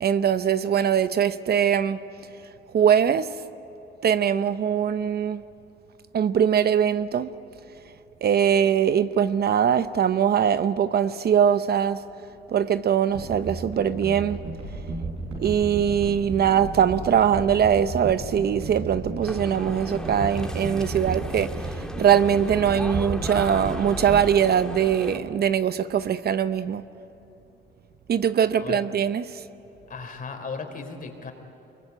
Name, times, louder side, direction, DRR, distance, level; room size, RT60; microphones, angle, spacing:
voice 1, 0.0-2.0 2.7-3.3 4.0-5.4 6.1-7.3 8.2-12.0 12.5-14.4 15.4-26.8 28.1-29.4, right 8 dB, 55° right, 0.8 m, -22 dB
sound 1, 13.1-25.5 25.8-25.9, right 3 dB, 80° right, 7.9 m, -34 dB
sound 2, 19.2-25.2, left 1 dB, 5° left, 2.0 m, -37 dB
voice 2, 29.9-31.3, left 4 dB, 45° left, 4.0 m, -35 dB
24.5 x 22.5 x 9.7 m
cardioid pair, 90°, 20 cm